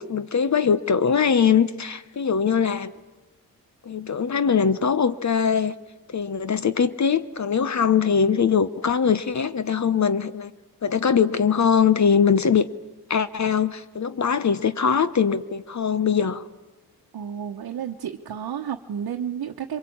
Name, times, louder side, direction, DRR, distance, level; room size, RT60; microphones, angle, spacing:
voice 1, 0.0-2.9 3.8-5.7 6.1-10.5 10.8-12.7 13.1-16.5, left 6 dB, 45° left, 14 dB, 1.0 m, -21 dB
voice 2, 17.1-19.8, right 8 dB, 70° right, 2 dB, 1.1 m, -31 dB
24.5 x 23.0 x 8.7 m, 1.1 s
cardioid pair, 75°, 37 cm